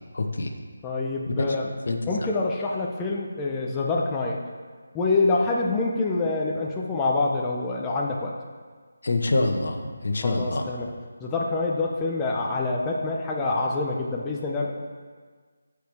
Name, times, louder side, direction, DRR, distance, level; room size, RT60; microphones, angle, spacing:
voice 1, 0.1-0.5 1.9-2.3 9.0-10.7, left 2 dB, 60° left, 3 dB, 1.1 m, -26 dB
voice 2, 0.8-1.7 2.1-4.4 4.9-8.3 10.2-10.9 11.2-14.7, left 3 dB, 10° left, -2 dB, 0.6 m, -26 dB
14.5 x 4.9 x 3.5 m, 1.5 s
figure-of-eight pair, 175°, 0 cm